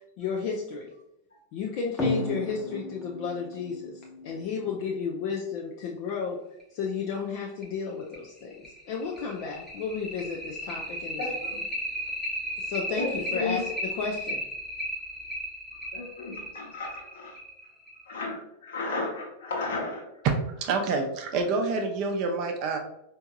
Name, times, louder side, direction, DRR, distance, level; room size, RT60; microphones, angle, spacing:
voice 1, 0.2-0.9 1.5-6.4 6.7-11.6 12.6-14.4, left 5 dB, 45° left, -1 dB, 0.4 m, -33 dB
sound 1, 2.0-5.1 6.6-6.7 7.1-7.2 7.6-7.7 8.1-18.2, left 1 dB, 10° left, 0.8 m, -34 dB
voice 2, 11.2-11.6 13.0-13.6 15.9-17.4 18.1-20.0, left 3 dB, 60° left, -3 dB, 1.2 m, -34 dB
voice 3, 20.2-22.8, right 4 dB, 40° right, 4 dB, 0.5 m, -27 dB
4.4 x 2.7 x 2.3 m, 0.82 s
figure-of-eight pair, 90°, 0 cm